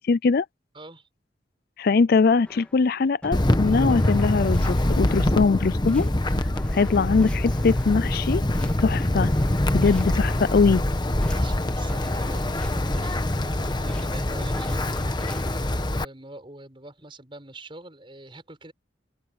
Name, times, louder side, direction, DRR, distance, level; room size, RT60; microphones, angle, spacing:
voice 1, 0.1-0.5 1.8-6.1 6.7-8.4 8.8-9.3 9.7-10.8, left 4 dB, 55° left, 0.4 m, -21 dB
voice 2, 0.7-1.1 9.8-10.1 11.2-18.7, right 2 dB, 30° right, 6.6 m, -45 dB
sound 1, 2.5-2.8 3.2-5.6 5.9-8.2 8.5-10.8 11.2-13.5 13.9-15.5, equal, 5° left, 2.6 m, -42 dB
Wind, 3.3-16.0, left 1 dB, 25° left, 1.1 m, -24 dB
open air
head